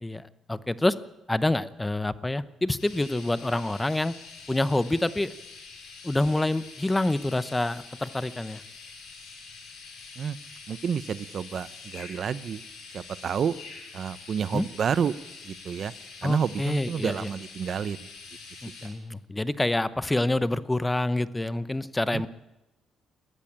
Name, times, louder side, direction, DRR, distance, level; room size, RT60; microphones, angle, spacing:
voice 1, 0.0-1.0 1.3-4.1 4.5-5.3 6.0-8.6 14.5-14.7 16.2-17.3 18.6-22.3, left 2 dB, 15° left, 15 dB, 0.9 m, -27 dB
sound 1, 2.8-18.9, left 4 dB, 90° left, 6.8 m, -45 dB
voice 2, 10.7-12.6 12.9-13.6 13.9-15.2 15.4-15.9 16.2-18.0 18.8-18.9 22.1-22.2, right 7 dB, 55° right, 17 dB, 0.7 m, -29 dB
22.0 x 15.0 x 8.9 m, 0.99 s
cardioid pair, 90°, 0 cm